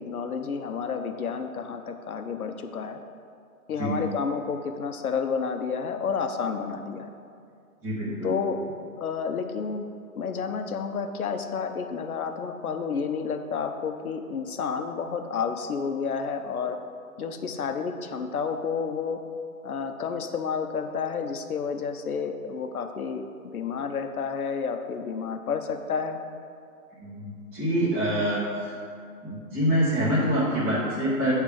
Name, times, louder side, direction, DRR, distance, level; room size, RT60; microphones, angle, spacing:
voice 1, 0.0-3.0 3.7-7.1 8.2-8.6 9.0-9.8 10.2-16.8 17.2-19.2 19.6-23.3 23.5-26.2, left 6 dB, 70° left, 6 dB, 0.8 m, -30 dB
voice 2, 7.8-8.3 27.0-28.8 29.2-31.3, equal, 5° right, -13 dB, 0.7 m, -26 dB
9.0 x 3.3 x 4.8 m, 2.3 s
hypercardioid pair, 145°, 45 cm